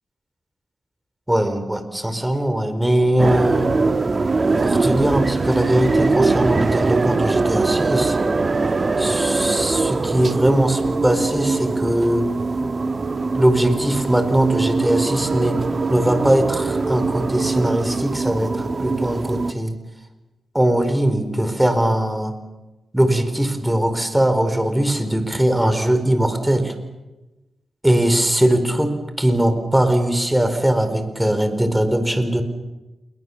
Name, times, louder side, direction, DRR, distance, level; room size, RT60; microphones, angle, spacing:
voice 1, 1.3-3.7 4.6-8.2 9.0-12.2 13.3-15.6 15.9-19.7 20.5-22.3 22.9-26.7 27.8-32.4, right 1 dB, 10° right, 9 dB, 4.5 m, -20 dB
sound 1, 3.2-19.5, right 3 dB, 40° right, 1.6 m, -22 dB
28.0 x 22.5 x 7.3 m, 1.0 s
cardioid pair, 65°, 0 cm